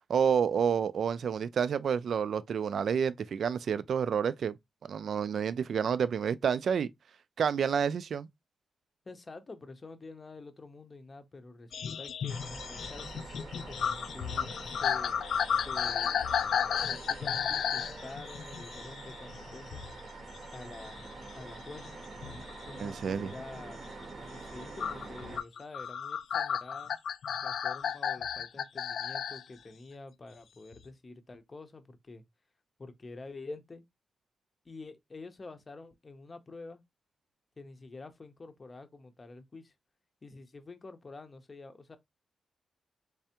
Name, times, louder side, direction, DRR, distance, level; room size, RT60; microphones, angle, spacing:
voice 1, 0.1-4.6 4.9-6.9 7.4-8.3 22.8-23.3, right 7 dB, 65° right, 0.3 m, -29 dB
voice 2, 9.1-15.1 15.5-16.3 16.9-19.8 20.5-21.1 21.4-21.9 22.6-23.8 24.3-26.9 27.4-32.2 32.8-33.8 34.6-36.8 37.6-39.7 40.2-42.0, left 3 dB, 30° left, 0.6 m, -48 dB
sound 1, 11.7-20.0 20.3-22.7 23.2-23.6 24.8-29.4 30.7-30.8, left 7 dB, 75° left, 0.3 m, -33 dB
sound 2, 12.3-25.4, right 3 dB, 40° right, 0.7 m, -46 dB
3.4 x 3.3 x 2.8 m
wide cardioid pair, 115°, 0 cm